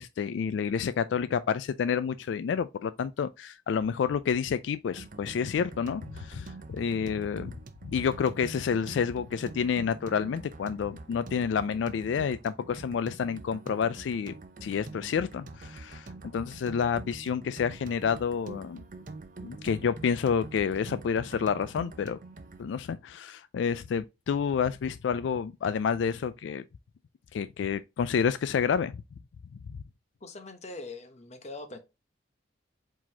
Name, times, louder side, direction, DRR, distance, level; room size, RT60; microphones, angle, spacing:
voice 1, 0.0-7.5 7.9-14.3 14.6-18.8 19.4-22.2 22.6-26.6 27.3-28.9, left 6 dB, 85° left, 0.3 m, -29 dB
sound 1, 4.9-22.6, right 3 dB, 45° right, 0.7 m, -45 dB
voice 2, 30.2-31.8, left 2 dB, 40° left, 0.9 m, -42 dB
4.8 x 3.9 x 2.7 m
head